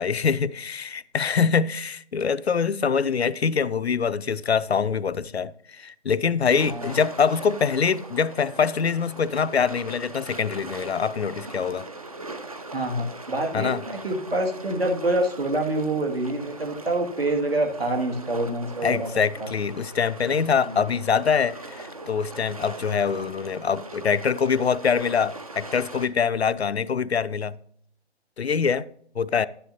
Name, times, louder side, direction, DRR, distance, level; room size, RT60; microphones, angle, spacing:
voice 1, 0.0-11.9 13.5-13.8 18.8-27.6 28.4-28.9 29.2-29.5, left 6 dB, 70° left, 0.5 m, -24 dB
sound 1, 6.5-26.1, right 2 dB, 35° right, 0.6 m, -40 dB
voice 2, 12.7-19.1 19.4-19.5, right 1 dB, 60° right, 2.1 m, -26 dB
10.5 x 9.9 x 2.7 m
figure-of-eight pair, 160°, 33 cm